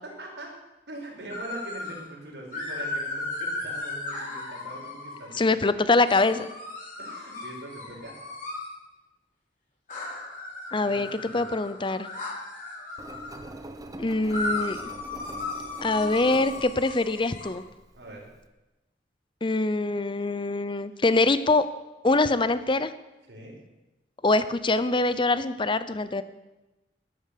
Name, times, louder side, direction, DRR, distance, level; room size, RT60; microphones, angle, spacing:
voice 1, 0.0-0.5 0.9-5.7 7.0-8.1 10.8-11.6 17.9-18.3 23.3-23.6, right 1 dB, 85° right, -1 dB, 5.1 m, -42 dB
sound 1, 1.3-2.0 2.5-5.3 6.0-8.7 9.9-13.3 14.3-17.5, left 2 dB, 50° left, 5.6 m, -36 dB
voice 2, 5.3-6.5 10.7-12.1 14.0-14.9 15.8-17.6 19.4-21.6 22.0-22.9 24.2-26.2, left 2 dB, 30° left, 14 dB, 0.7 m, -24 dB
Engine, 13.0-18.5, right 2 dB, 20° right, 1.1 m, -44 dB
14.0 x 11.0 x 6.7 m, 1.0 s
head